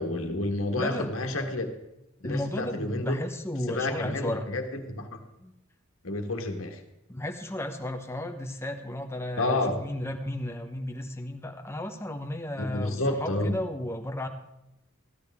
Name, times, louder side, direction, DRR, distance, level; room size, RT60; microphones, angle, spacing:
voice 1, 0.0-1.7 2.2-3.2 3.7-4.6 4.9-5.2 6.0-6.8 9.4-9.8 12.6-13.6, left 2 dB, 80° left, 4 dB, 1.6 m, -29 dB
voice 2, 0.7-1.1 2.2-4.5 5.4-5.5 7.1-14.3, left 1 dB, 15° left, 5 dB, 1.0 m, -34 dB
15.0 x 12.5 x 3.6 m, 0.88 s
head